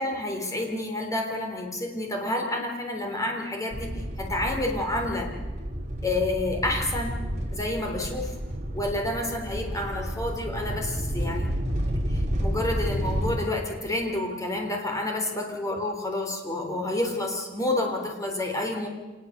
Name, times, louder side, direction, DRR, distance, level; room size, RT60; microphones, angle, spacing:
voice 1, 0.0-5.3 6.0-7.2 7.5-8.4 8.7-11.5 12.1-18.9, left 1 dB, 15° left, 2 dB, 3.6 m, -29 dB
sound 1, 3.7-13.4, equal, 35° right, 3.0 m, -31 dB
26.0 x 20.0 x 6.7 m, 1.2 s
head